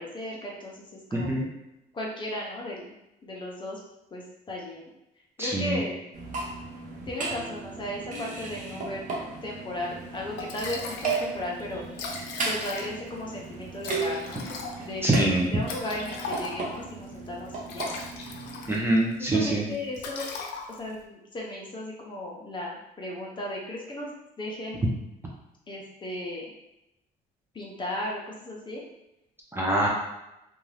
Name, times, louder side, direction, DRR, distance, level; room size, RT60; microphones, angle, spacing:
voice 1, 0.0-1.5 1.9-2.9 3.2-3.8 4.1-4.9 5.4-5.9 7.1-9.0 9.4-11.8 12.4-14.4 14.8-18.0 19.2-20.3 20.8-24.1 24.4-24.8 25.7-26.5 27.5-28.8, left 1 dB, 30° left, -2 dB, 0.7 m, -35 dB
voice 2, 1.1-1.5 5.4-5.8 15.0-15.5 18.7-19.6 29.5-29.9, right 1 dB, 15° right, -3 dB, 0.6 m, -24 dB
sound 1, 6.1-18.8, right 3 dB, 50° right, 0.8 m, -36 dB
Liquid, 10.0-10.1 10.4-11.3 11.6-11.7 11.9-13.1 13.8-16.8 17.5-19.0 19.3-19.6 19.9-21.0, left 4 dB, 85° left, 0.5 m, -38 dB
2.6 x 2.3 x 3.2 m, 0.90 s
cardioid pair, 110°, 17 cm